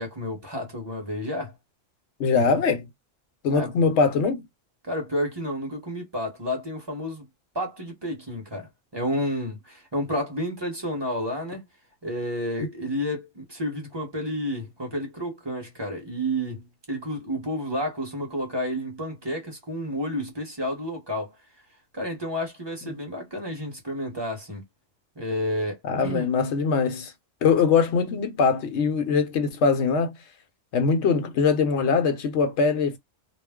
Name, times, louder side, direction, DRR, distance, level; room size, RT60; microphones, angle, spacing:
voice 1, 0.0-1.5 3.5-3.7 4.8-7.2 7.5-11.6 12.0-21.3 21.9-24.6 25.2-26.3, equal, 25° right, 0.9 m, -30 dB
voice 2, 2.2-2.9 3.4-4.4 25.8-27.1 27.4-30.2 30.7-33.0, left 5 dB, 65° left, 0.9 m, -22 dB
2.4 x 2.0 x 3.5 m
omnidirectional pair, 1.3 m